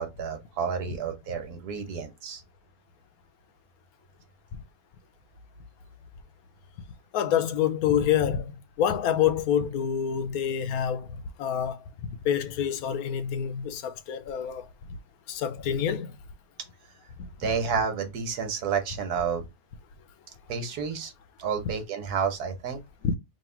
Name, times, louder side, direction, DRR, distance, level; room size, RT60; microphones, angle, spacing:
voice 1, 0.0-2.4 17.4-19.4 20.5-21.1 21.4-22.8, right 6 dB, 85° right, 1.4 m, -30 dB
voice 2, 7.1-11.1 11.4-11.8 12.2-14.7 15.3-16.1 23.0-23.2, left 9 dB, 80° left, 1.1 m, -27 dB
3.0 x 2.8 x 4.3 m
omnidirectional pair, 1.6 m